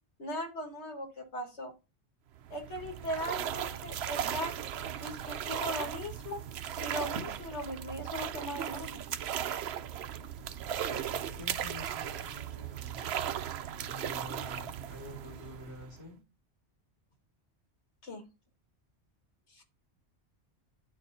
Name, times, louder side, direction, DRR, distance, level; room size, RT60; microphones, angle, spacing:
voice 1, 0.2-1.7 2.5-4.6 5.0-6.4 6.8-9.1 18.0-18.2 19.5-19.6, equal, 90° left, 4 dB, 1.9 m, -39 dB
sound 1, 2.4-16.1, right 9 dB, 75° right, 0.8 m, -37 dB
voice 2, 10.9-13.2 13.8-16.2, left 1 dB, 25° left, -4 dB, 3.5 m, -47 dB
12.5 x 4.4 x 2.6 m, 0.29 s
omnidirectional pair, 1.1 m